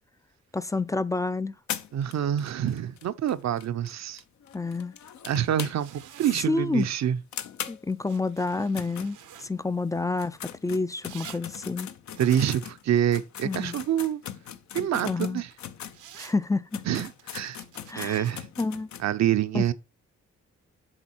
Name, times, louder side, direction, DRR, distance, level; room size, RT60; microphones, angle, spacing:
voice 1, 0.5-1.5 4.5-4.9 6.5-6.9 7.7-11.9 13.4-13.8 15.0-15.4 16.2-16.8 17.9-18.3 18.6-18.9 19.5-19.7, left 3 dB, 10° left, 0.3 m, -29 dB
sound 1, 1.7-6.1 6.4-6.5 6.8-6.9 7.3-9.7 10.1-16.0 16.4-16.5 16.7-19.1, left 9 dB, 65° left, 0.7 m, -40 dB
voice 2, 1.9-4.2 5.2-7.2 12.2-14.2 14.7-15.5 16.9-17.6 18.0-18.5 19.0-19.7, right 10 dB, 60° right, 0.6 m, -26 dB
sound 2, 5.8-6.4 8.0-9.5 11.0-11.4 12.1-14.0 15.9-16.4 17.1-18.3, right 10 dB, 85° right, 0.9 m, -48 dB
7.3 x 4.1 x 4.4 m
cardioid pair, 70°, 30 cm